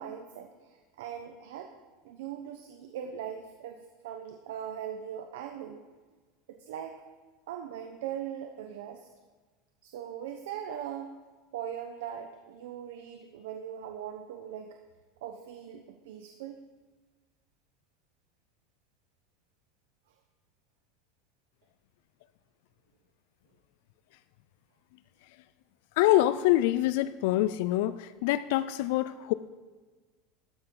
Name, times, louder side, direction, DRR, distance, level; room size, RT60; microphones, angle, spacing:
voice 1, 0.0-1.7 2.0-5.8 6.5-7.0 7.5-9.1 9.8-11.2 11.5-14.8 15.2-16.6, right 9 dB, 85° right, 5 dB, 0.9 m, -40 dB
voice 2, 26.0-29.3, left 15 dB, 65° left, 14 dB, 0.4 m, -25 dB
13.5 x 10.0 x 3.9 m, 1.4 s
supercardioid pair, 160°, 0 cm